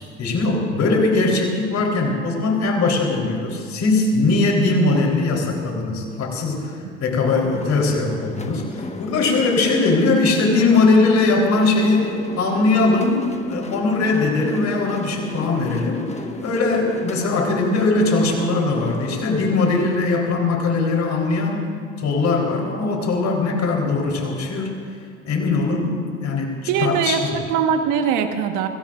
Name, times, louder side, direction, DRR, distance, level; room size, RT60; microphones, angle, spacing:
voice 1, 0.2-16.0 16.4-21.7 22.0-24.7 25.2-26.5 26.8-27.3, left 3 dB, 55° left, 0 dB, 4.0 m, -20 dB
sound 1, 7.2-20.0, left 3 dB, 20° left, 1.5 m, -34 dB
voice 2, 26.7-28.7, right 7 dB, 70° right, 6 dB, 1.5 m, -21 dB
29.5 x 16.5 x 2.6 m, 2.3 s
hypercardioid pair, 60°, 32 cm